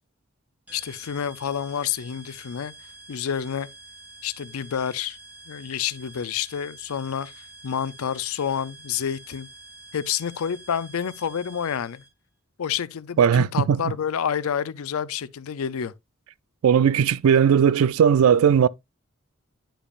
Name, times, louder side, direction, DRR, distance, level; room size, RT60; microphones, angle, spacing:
voice 1, 0.7-2.7 3.1-3.7 4.2-5.2 5.5-7.3 7.6-9.5 9.9-12.0 12.6-15.9, left 8 dB, 90° left, 0.5 m, -29 dB
sound 1, 0.7-12.1, right 3 dB, 10° right, 2.4 m, -47 dB
voice 2, 13.2-13.8 16.6-18.7, right 7 dB, 85° right, 0.3 m, -18 dB
10.0 x 5.1 x 2.4 m
head